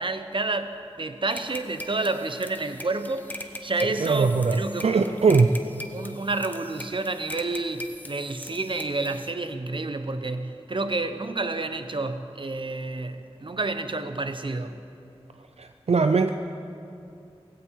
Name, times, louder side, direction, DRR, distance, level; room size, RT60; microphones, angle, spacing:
voice 1, 0.0-5.2 5.9-14.7, right 2 dB, 50° right, 9 dB, 0.9 m, -30 dB
sound 1, 1.3-9.3, left 1 dB, 15° left, 1.0 m, -41 dB
voice 2, 3.8-5.5 15.6-16.3, right 4 dB, 75° right, 8 dB, 0.5 m, -21 dB
18.0 x 16.5 x 4.6 m, 2.7 s
wide cardioid pair, 70°, 11 cm